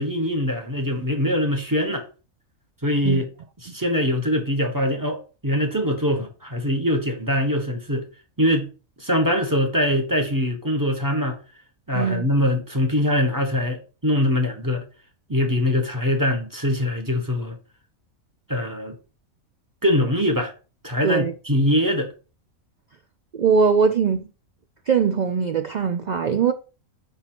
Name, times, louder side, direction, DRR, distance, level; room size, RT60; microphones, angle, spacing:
voice 1, 0.0-2.1 2.8-3.3 3.6-8.1 8.4-8.7 9.0-11.4 11.9-14.8 15.3-17.6 18.5-19.0 19.8-20.5 20.8-22.1, equal, 15° right, 1.1 m, -23 dB
voice 2, 11.9-12.2 21.0-21.3 23.3-24.2 24.9-26.5, right 6 dB, 70° right, 0.4 m, -21 dB
5.5 x 5.3 x 4.4 m
omnidirectional pair, 1.4 m